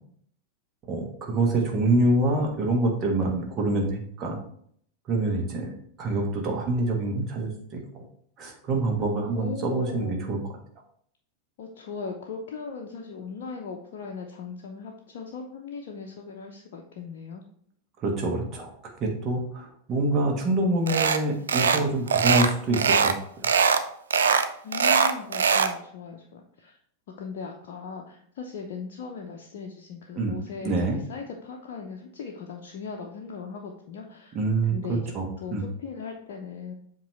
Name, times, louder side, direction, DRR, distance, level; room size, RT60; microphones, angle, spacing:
voice 1, 0.9-4.4 5.1-5.7 6.0-8.0 8.4-10.5 18.0-18.7 19.0-23.5 30.2-30.3 30.6-31.0 34.3-35.3 35.5-35.6, right 2 dB, 30° right, 1 dB, 1.5 m, -26 dB
voice 2, 9.2-10.2 11.6-17.4 24.6-26.7 27.2-34.4 34.7-36.7, left 5 dB, 55° left, 0 dB, 0.7 m, -38 dB
sound 1, 20.9-21.2 21.5-21.8 22.1-23.2 23.4-23.8 24.1-25.7, right 6 dB, 70° right, 0.4 m, -21 dB
7.5 x 3.1 x 4.1 m, 0.64 s
figure-of-eight pair, 90°, 0 cm